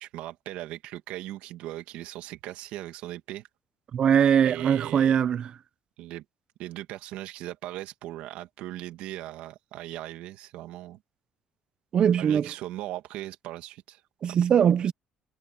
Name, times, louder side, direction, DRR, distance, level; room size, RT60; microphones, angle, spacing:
voice 1, 0.0-3.5 4.4-5.2 6.0-6.2 6.6-11.0 12.1-14.4, right 15 dB, 80° right, 2.2 m, -39 dB
voice 2, 3.9-5.5 11.9-12.5 14.2-14.9, right 8 dB, 50° right, 0.8 m, -21 dB
cardioid pair, 110°, 2 cm